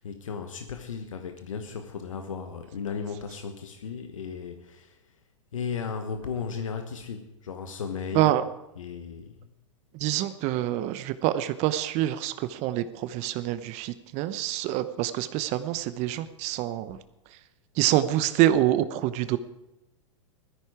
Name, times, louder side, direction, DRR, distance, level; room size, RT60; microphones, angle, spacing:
voice 1, 0.0-5.2 5.5-8.4 8.8-9.5 16.9-17.0, left 6 dB, 85° left, 6 dB, 1.3 m, -35 dB
voice 2, 9.9-17.0 17.8-19.4, right 13 dB, 45° right, 12 dB, 0.8 m, -26 dB
16.0 x 13.5 x 4.9 m, 0.92 s
hypercardioid pair, 110°, 16 cm